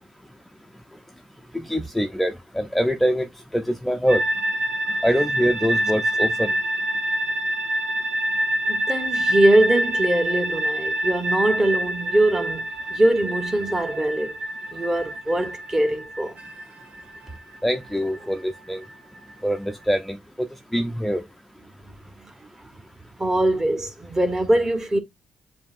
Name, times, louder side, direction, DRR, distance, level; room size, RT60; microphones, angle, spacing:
voice 1, 1.5-3.3 3.5-4.2 5.0-6.5 17.6-18.8 19.4-20.5 20.7-21.2, equal, 5° left, 0.4 m, -24 dB
sound 1, 4.1-19.8, right 1 dB, 65° right, 1.3 m, -27 dB
voice 2, 8.7-14.4 14.7-16.3 22.2-22.3 23.2-25.0, right 1 dB, 20° right, 1.0 m, -22 dB
7.2 x 2.7 x 2.4 m
cardioid pair, 105°, 3 cm